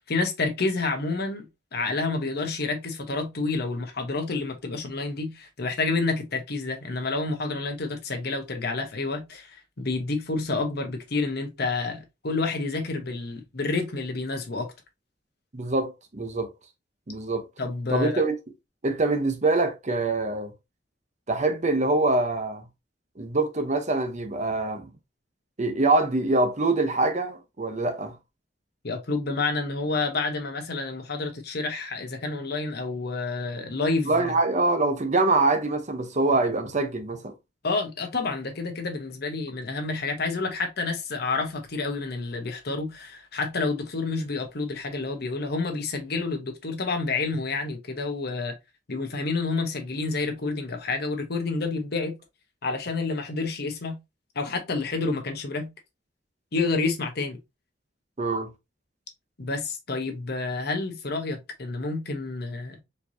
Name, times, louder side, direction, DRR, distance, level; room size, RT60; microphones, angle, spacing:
voice 1, 0.0-14.7 17.6-18.2 28.8-34.3 37.6-48.6 48.9-52.1 52.6-54.0 54.3-55.7 56.5-57.4 59.4-62.8, left 3 dB, 60° left, 1.0 m, -29 dB
voice 2, 15.5-16.5 17.1-17.4 17.9-18.3 18.8-20.5 21.3-22.7 23.2-24.9 25.6-28.1 34.1-37.3 58.2-58.5, right 2 dB, 40° right, 0.8 m, -24 dB
4.4 x 3.1 x 2.7 m
head